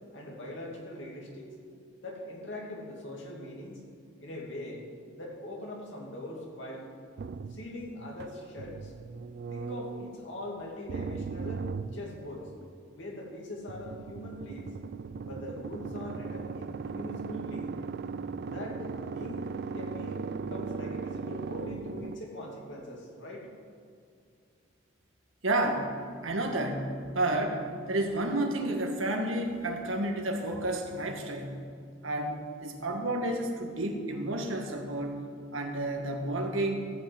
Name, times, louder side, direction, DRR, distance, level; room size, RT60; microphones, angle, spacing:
voice 1, 0.1-1.5 2.0-3.8 4.2-4.8 5.2-6.9 7.5-8.9 9.5-12.5 12.9-14.7 15.2-17.8 18.4-23.5, left 1 dB, 65° left, -2 dB, 2.6 m, -41 dB
sound 1, 7.2-10.2 10.9-12.6 13.7-22.2, right 5 dB, 50° right, 0.3 m, -38 dB
voice 2, 25.4-26.0 26.2-31.6 32.0-35.2 35.5-36.8, right 1 dB, 75° right, 2 dB, 1.6 m, -31 dB
15.0 x 5.8 x 8.0 m, 2.4 s
head